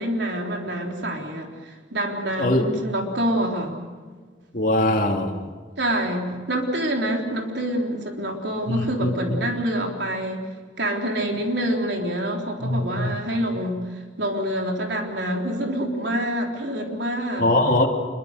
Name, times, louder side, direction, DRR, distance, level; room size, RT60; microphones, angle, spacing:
voice 1, 0.0-3.8 5.8-10.4 10.8-17.5, right 1 dB, 75° right, 2 dB, 3.8 m, -26 dB
voice 2, 4.5-5.3 8.7-9.1 12.6-13.2 17.4-17.9, left 1 dB, 45° left, 2 dB, 2.9 m, -21 dB
26.0 x 23.5 x 6.7 m, 1.5 s
head